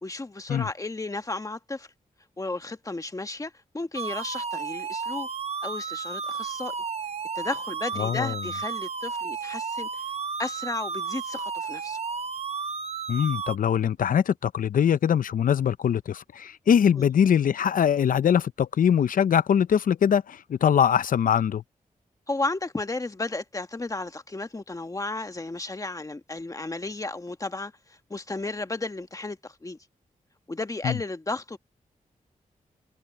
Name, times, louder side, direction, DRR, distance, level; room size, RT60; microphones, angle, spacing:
voice 1, 0.0-1.9 2.4-5.3 5.6-6.7 7.3-10.0 10.4-12.0 16.9-17.1 22.3-29.8 30.5-31.6, left 2 dB, 25° left, 1.4 m, -33 dB
sound 1, 3.9-13.6, right 5 dB, 45° right, 1.0 m, -33 dB
voice 2, 8.0-8.4 13.1-21.6 30.8-31.0, left 8 dB, 80° left, 0.5 m, -22 dB
wide cardioid pair, 100°, 14 cm